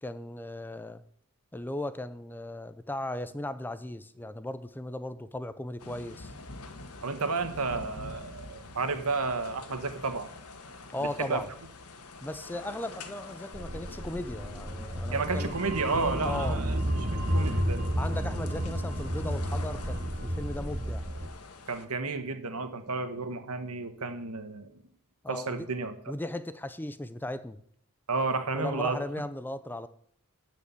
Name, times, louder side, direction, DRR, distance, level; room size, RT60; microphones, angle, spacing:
voice 1, 0.0-1.0 1.5-6.3 10.9-11.5 12.2-15.6 16.2-16.6 18.0-21.1 25.2-25.7 26.1-27.6 28.5-29.9, left 1 dB, 10° left, 0.4 m, -37 dB
sound 1, 5.8-21.9, left 3 dB, 85° left, 1.3 m, -46 dB
voice 2, 7.0-10.3 11.2-11.4 15.1-17.8 21.7-24.7 25.3-25.9 28.1-29.0, right 3 dB, 85° right, 1.4 m, -32 dB
sound 2, 13.5-21.3, equal, 40° right, 1.1 m, -31 dB
12.5 x 5.1 x 8.2 m
head